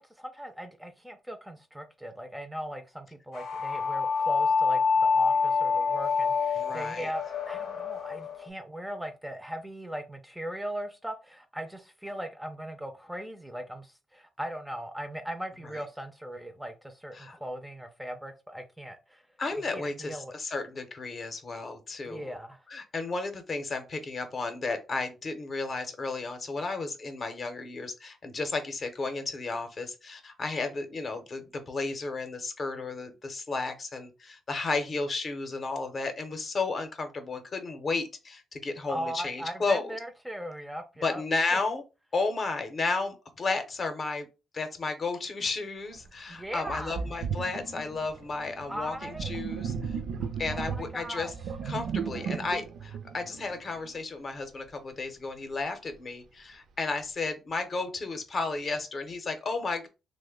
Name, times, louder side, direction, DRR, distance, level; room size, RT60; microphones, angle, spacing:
voice 1, 0.0-19.2 19.7-20.3 22.0-22.6 38.9-41.2 41.5-41.6 46.3-47.0 48.7-49.3 50.5-51.3, equal, 5° right, 0.4 m, -39 dB
sound 1, 3.3-8.5, left 5 dB, 80° left, 0.6 m, -27 dB
voice 2, 6.5-7.1 17.2-17.4 19.4-22.3 22.7-39.8 41.0-41.8 42.1-44.3 44.5-50.0 50.4-51.3 51.6-59.9, left 3 dB, 40° left, 0.6 m, -33 dB
Sink (filling or washing), 46.0-46.1 46.7-54.0, right 6 dB, 75° right, 0.4 m, -36 dB
3.1 x 2.1 x 3.5 m
cardioid pair, 115°, 0 cm